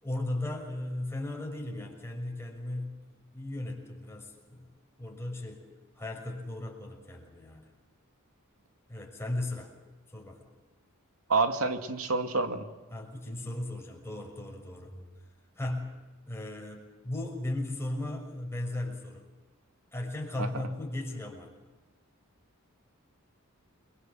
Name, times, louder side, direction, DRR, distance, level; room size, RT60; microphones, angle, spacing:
voice 1, 0.0-5.6 5.9-7.7 8.9-9.7 10.1-10.5 12.9-15.1 15.6-15.9 16.3-19.2 19.9-21.5, left 1 dB, 10° left, 1 dB, 6.2 m, -36 dB
voice 2, 11.3-12.6 20.4-20.5, right 3 dB, 85° right, 6 dB, 2.2 m, -28 dB
29.5 x 23.0 x 7.6 m, 1.2 s
head